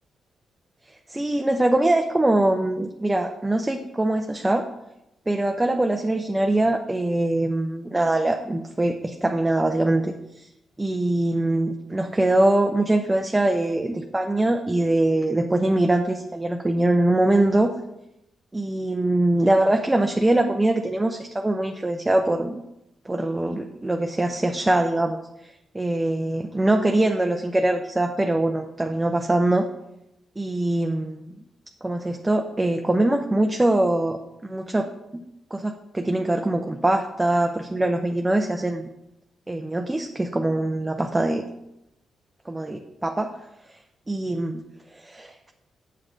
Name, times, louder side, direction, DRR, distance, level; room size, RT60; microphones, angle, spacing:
voice 1, 1.1-4.7 5.3-10.5 10.8-17.7 18.5-22.6 23.0-29.7 30.4-31.4 31.8-35.3 35.5-38.9 39.5-41.5 42.5-43.3 44.1-44.6 44.9-45.5, right 1 dB, 15° right, 4 dB, 0.5 m, -23 dB
7.9 x 7.4 x 2.6 m, 0.87 s
cardioid pair, 80°, 0 cm